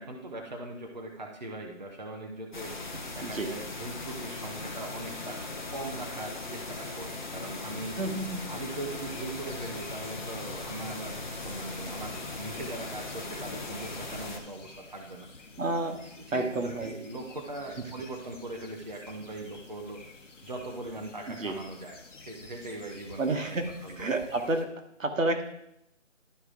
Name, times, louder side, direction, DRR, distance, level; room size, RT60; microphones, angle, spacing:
voice 1, 0.0-2.7 3.1-5.4 5.7-8.0 8.5-15.3 16.3-20.0 20.4-24.0, right 2 dB, 35° right, 0 dB, 0.8 m, -40 dB
sound 1, 2.5-14.4, left 2 dB, 35° left, 0.9 m, -39 dB
voice 2, 3.2-3.5 8.0-8.5 15.6-16.0 16.3-16.9 21.3-21.5 23.2-24.7 25.0-25.4, right 2 dB, 75° right, 4 dB, 1.5 m, -30 dB
sound 2, 8.0-24.7, left 3 dB, 65° left, 1.2 m, -51 dB
12.0 x 4.8 x 3.7 m, 0.78 s
figure-of-eight pair, 170°, 39 cm